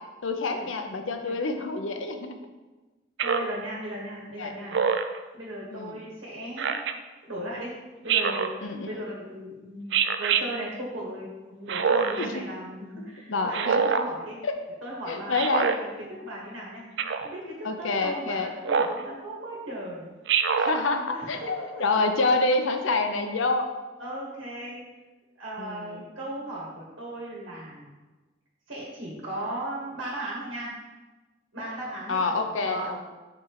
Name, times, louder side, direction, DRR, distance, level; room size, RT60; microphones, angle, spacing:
voice 1, 0.2-2.4 4.4-4.5 5.7-6.0 8.6-8.9 12.2-12.3 13.0-13.9 14.4-14.5 15.1-15.7 17.6-18.5 20.6-23.7 25.6-26.0 32.1-33.1, left 3 dB, 90° left, 6 dB, 0.7 m, -27 dB
Speech synthesizer, 3.2-3.6 4.7-5.2 6.6-6.9 8.1-8.6 9.9-10.4 11.7-12.3 13.5-14.1 15.4-15.8 17.0-17.3 18.7-19.0 20.3-20.8, right 6 dB, 65° right, 0.4 m, -24 dB
voice 2, 3.2-4.8 5.3-6.9 7.2-14.4 14.8-16.9 17.2-20.1 21.1-21.9 24.0-24.8 25.4-27.9 28.7-30.7 31.5-32.9, right 1 dB, 85° right, -4 dB, 1.6 m, -37 dB
6.0 x 4.3 x 4.8 m, 1.2 s
head